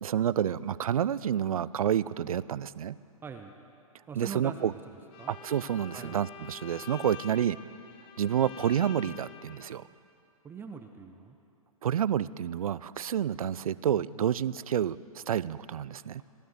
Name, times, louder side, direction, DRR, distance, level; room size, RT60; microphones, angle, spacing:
voice 1, 0.0-3.0 4.2-4.7 5.3-7.6 8.2-9.8 11.8-16.2, right 9 dB, 70° right, 19 dB, 0.5 m, -29 dB
voice 2, 3.2-3.5 4.1-4.8 5.2-5.3 5.9-6.2 10.4-11.4, right 5 dB, 10° right, 5 dB, 0.6 m, -42 dB
Bowed string instrument, 5.1-9.8, left 9 dB, 25° left, 0.8 m, -47 dB
17.5 x 12.0 x 6.6 m, 2.6 s
hypercardioid pair, 125°, 19 cm